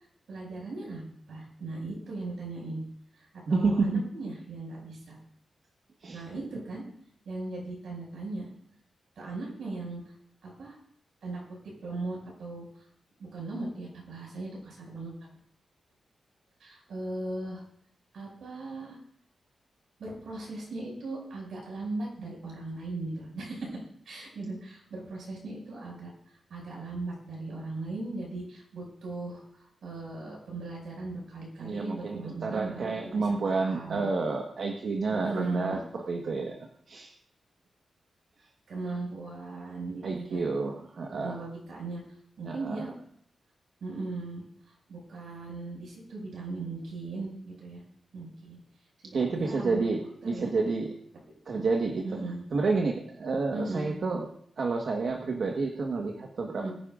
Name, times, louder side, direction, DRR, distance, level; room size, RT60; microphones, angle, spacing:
voice 1, 0.3-2.8 3.1-5.2 6.1-6.8 7.2-8.5 9.2-10.0 10.4-10.8 11.2-11.4 11.8-12.6 13.2-15.1 16.6-17.6 18.1-19.0 20.0-34.0 35.1-35.8 38.7-40.5 41.1-42.0 42.4-42.9 43.8-47.8 48.1-48.6 49.0-49.9 50.2-50.5 52.0-52.4 53.5-53.9 56.5-56.7, right 2 dB, 85° right, -2 dB, 6.0 m, -38 dB
voice 2, 3.5-4.0 6.0-6.2 31.6-37.1 40.0-41.5 42.4-42.9 49.1-50.9 51.5-52.0 52.5-54.2 54.6-56.7, right 3 dB, 60° right, 1 dB, 1.4 m, -30 dB
23.0 x 10.0 x 2.5 m, 0.65 s
wide cardioid pair, 115°, 0 cm